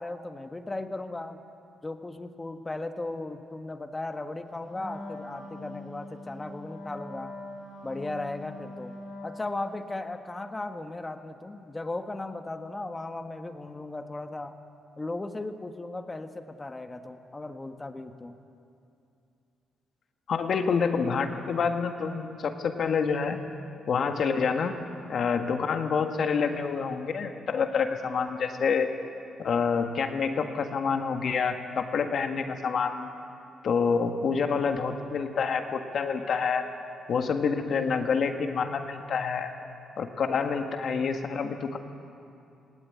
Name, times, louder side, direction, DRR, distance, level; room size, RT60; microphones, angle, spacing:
voice 1, 0.0-1.4 1.8-7.4 7.8-8.9 9.2-14.6 15.0-18.3, left 2 dB, 20° left, 7 dB, 1.4 m, -36 dB
Wind instrument woodwind instrument, 4.7-9.8, left 2 dB, 85° left, 4.7 m, -42 dB
voice 2, 20.3-23.4 23.9-24.7 25.1-28.9 29.4-33.1 33.6-36.6 37.1-39.5 40.0-41.8, left 5 dB, 55° left, 6 dB, 1.7 m, -27 dB
19.5 x 18.0 x 9.5 m, 2.6 s
cardioid pair, 90°, 0 cm